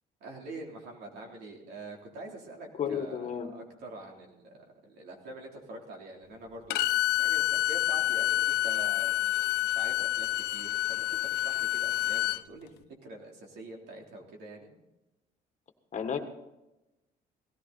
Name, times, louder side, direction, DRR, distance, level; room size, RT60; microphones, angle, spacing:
voice 1, 0.2-6.8 7.2-12.7 13.0-14.7, right 2 dB, 80° right, 0 dB, 3.6 m, -45 dB
voice 2, 2.8-3.5 15.9-16.2, left 7 dB, 45° left, 7 dB, 1.6 m, -32 dB
Bowed string instrument, 6.7-12.4, left 15 dB, 80° left, 0.6 m, -28 dB
18.0 x 14.5 x 4.2 m, 0.96 s
cardioid pair, 110°, 17 cm